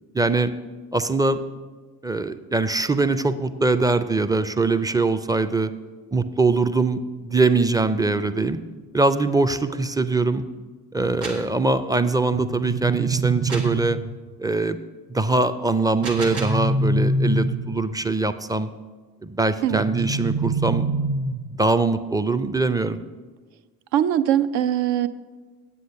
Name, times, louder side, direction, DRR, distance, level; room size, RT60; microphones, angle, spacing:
voice 1, 0.1-0.5 0.9-1.4 2.0-5.7 6.1-8.6 8.9-10.4 10.9-14.0 14.4-14.8 15.1-18.7 19.2-20.9 21.5-23.0, right 3 dB, 10° right, 11 dB, 0.4 m, -22 dB
sound 1, 11.0-11.5 13.5-13.8 15.8-16.7, right 3 dB, 85° right, 1.3 m, -33 dB
sound 2, 12.3-14.3 16.0-18.0 19.7-21.7, right 2 dB, 35° right, 1.0 m, -25 dB
voice 2, 23.9-25.1, right 10 dB, 65° right, 12 dB, 0.6 m, -21 dB
8.5 x 7.8 x 5.5 m, 1.4 s
hypercardioid pair, 45°, 46 cm